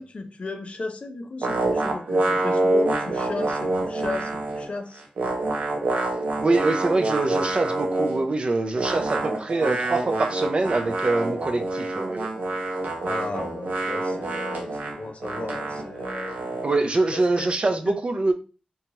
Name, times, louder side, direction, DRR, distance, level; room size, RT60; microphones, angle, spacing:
voice 1, 0.0-5.0 13.0-16.4 16.8-17.5 17.8-18.0, left 3 dB, 50° left, 6 dB, 0.4 m, -35 dB
sound 1, 1.4-4.7 5.0-8.3 8.7-16.8, right 2 dB, 85° right, 0.6 m, -27 dB
voice 2, 6.4-12.3 16.6-18.3, right 2 dB, 40° right, 6 dB, 0.4 m, -24 dB
2.8 x 2.2 x 2.8 m, 0.34 s
wide cardioid pair, 105°, 3 cm